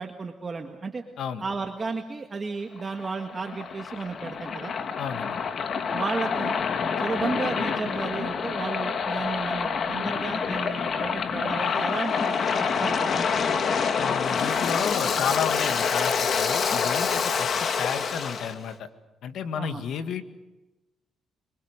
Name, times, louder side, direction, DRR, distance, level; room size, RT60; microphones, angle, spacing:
voice 1, 0.0-1.0 1.4-4.7 5.9-6.6 7.0-13.6 19.6-19.8, right 4 dB, 35° right, 3 dB, 1.8 m, -33 dB
Waves surf, 2.8-18.5, left 6 dB, 55° left, 1.9 m, -27 dB
voice 2, 5.0-5.4 14.0-17.5 17.8-18.9 19.2-20.2, left 7 dB, 75° left, 8 dB, 1.8 m, -31 dB
25.5 x 23.5 x 6.6 m, 1.1 s
cardioid pair, 90°, 0 cm